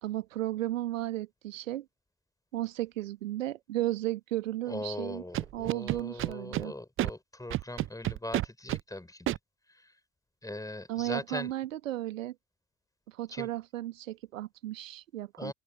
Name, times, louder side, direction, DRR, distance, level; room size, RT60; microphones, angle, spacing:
voice 1, 0.0-1.8 2.5-5.2 5.5-6.7 10.9-12.3 13.1-15.5, right 15 dB, 75° right, 1.5 m, -34 dB
voice 2, 4.7-9.4 9.7-9.9 10.4-11.5 13.3-13.5 15.4-15.5, left 2 dB, 10° left, 4.9 m, -40 dB
Scratching (performance technique), 5.3-6.6 7.0-7.1 7.5-8.8 9.3-9.4, right 14 dB, 35° right, 0.5 m, -30 dB
open air
figure-of-eight pair, 55°, 39 cm